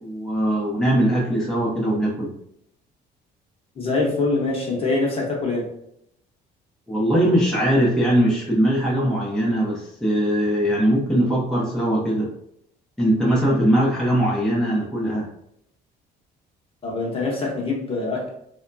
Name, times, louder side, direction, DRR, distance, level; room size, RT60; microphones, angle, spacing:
voice 1, 0.0-2.3 6.9-12.3 13.0-15.3, right 1 dB, ahead, -5 dB, 0.7 m, -21 dB
voice 2, 3.7-5.7 16.8-18.3, left 3 dB, 35° left, -2 dB, 0.9 m, -24 dB
2.7 x 2.2 x 2.6 m, 0.74 s
cardioid pair, 110°, 17 cm